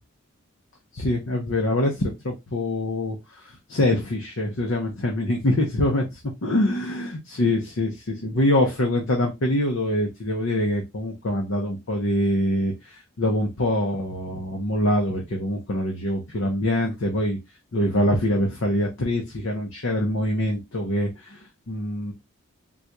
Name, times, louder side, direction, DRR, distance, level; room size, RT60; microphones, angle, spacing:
voice 1, 0.9-6.0 6.4-17.4 17.7-22.1, left 1 dB, 65° left, 1 dB, 0.7 m, -24 dB
3.9 x 2.3 x 2.9 m, 0.21 s
head